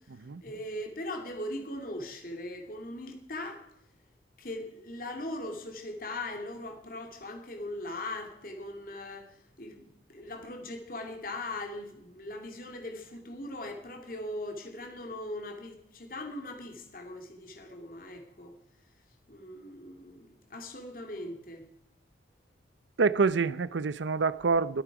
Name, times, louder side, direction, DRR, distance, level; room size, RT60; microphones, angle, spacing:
voice 1, 0.4-3.6 4.4-9.3 9.6-18.5 19.3-21.6, left 1 dB, 50° left, 2.5 m, -40 dB
voice 2, 23.0-24.8, right 4 dB, 85° right, 0.6 m, -26 dB
21.5 x 8.9 x 4.8 m
head